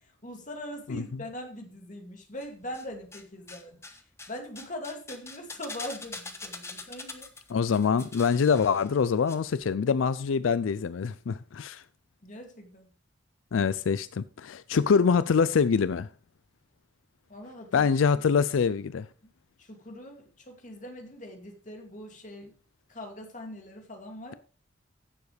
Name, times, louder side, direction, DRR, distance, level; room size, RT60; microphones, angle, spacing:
voice 1, 0.2-3.8 4.3-7.3 12.2-12.9 17.3-17.9 19.6-22.5 22.9-24.3, left 1 dB, 40° left, 2.6 m, -41 dB
sound 1, 2.4-3.2 3.5-9.4 9.6-9.7, left 3 dB, 15° left, 1.1 m, -43 dB
voice 2, 7.5-11.8 13.5-16.1 17.7-19.1, left 6 dB, 85° left, 0.4 m, -25 dB
16.0 x 7.1 x 3.3 m
head